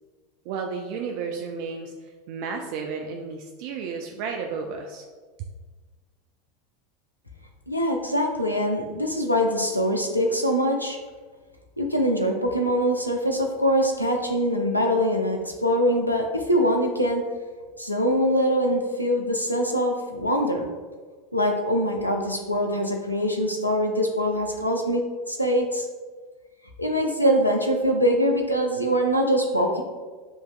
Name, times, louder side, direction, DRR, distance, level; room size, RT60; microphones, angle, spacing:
voice 1, 0.5-5.0, right 5 dB, 50° right, 2 dB, 0.3 m, -33 dB
voice 2, 7.7-11.0 11.8-17.2 17.8-20.7 21.3-25.9 26.8-29.8, equal, 90° left, 2 dB, 0.5 m, -23 dB
6.9 x 2.8 x 2.2 m, 1.4 s
figure-of-eight pair, 80°, 0 cm